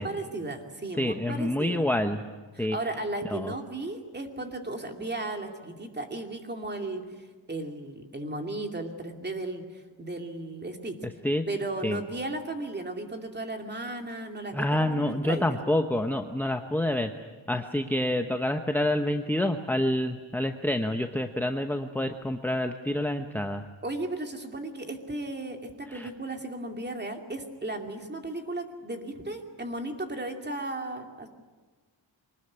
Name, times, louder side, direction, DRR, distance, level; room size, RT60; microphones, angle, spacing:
voice 1, 0.0-1.9 2.5-10.9 11.5-15.6 23.8-31.3, right 2 dB, 20° right, 4 dB, 2.6 m, -35 dB
voice 2, 1.0-2.2 2.6-2.8 3.3-3.5 11.2-11.5 11.8-12.0 14.5-17.1 17.5-23.6 25.9-26.1, left 1 dB, 5° left, 6 dB, 0.9 m, -27 dB
24.0 x 20.0 x 9.8 m, 1.3 s
wide cardioid pair, 145°, 45 cm